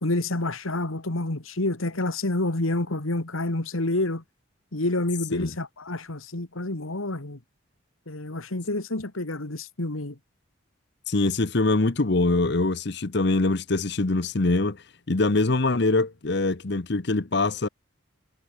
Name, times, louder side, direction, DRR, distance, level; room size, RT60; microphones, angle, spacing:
voice 1, 0.0-4.2 4.7-7.4 8.1-10.2, left 2 dB, 85° left, 2.2 m, -28 dB
voice 2, 11.1-17.7, left 2 dB, 55° left, 1.0 m, -24 dB
head